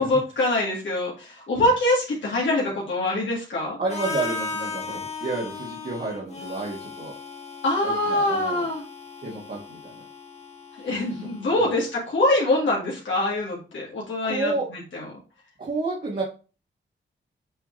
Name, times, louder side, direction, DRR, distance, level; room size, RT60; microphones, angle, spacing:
voice 1, 0.0-3.8 7.6-8.8 10.8-15.0, left 1 dB, 70° left, -3 dB, 2.1 m, -24 dB
voice 2, 3.8-7.2 7.8-8.7 9.2-10.0 10.8-11.7 14.2-14.7 15.6-16.2, right 3 dB, 45° right, -4 dB, 2.1 m, -31 dB
Harmonica, 3.9-11.8, left 4 dB, 35° left, 1.8 m, -36 dB
8.4 x 3.6 x 3.3 m, 0.33 s
wide cardioid pair, 150°, 20 cm